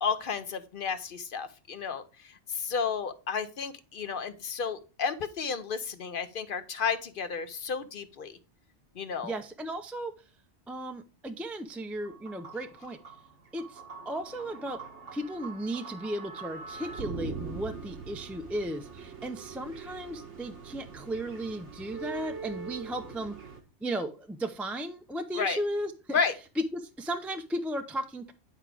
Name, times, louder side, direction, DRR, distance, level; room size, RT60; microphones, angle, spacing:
voice 1, 0.0-8.4 9.0-9.4 25.4-25.6 26.1-26.3, left 6 dB, 55° left, 11 dB, 0.8 m, -32 dB
voice 2, 9.2-10.1 10.7-13.0 13.5-14.8 15.1-23.4 23.8-26.2 26.6-28.3, right 1 dB, ahead, 6 dB, 0.4 m, -35 dB
sound 1, 12.0-23.6, right 5 dB, 85° right, 1.7 m, -43 dB
9.7 x 4.9 x 3.3 m, 0.33 s
omnidirectional pair, 1.2 m